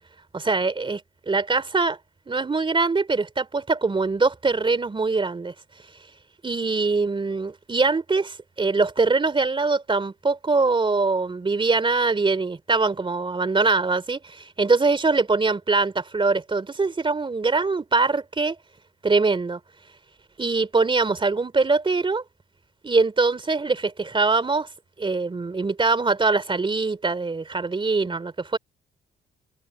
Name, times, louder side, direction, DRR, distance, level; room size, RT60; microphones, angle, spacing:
voice 1, 0.3-1.0 1.3-2.0 2.3-5.5 6.4-18.6 19.0-19.6 20.4-22.2 22.8-24.7 25.0-28.6, right 3 dB, 25° right, 3.3 m, -23 dB
cardioid pair, 90°, 20 cm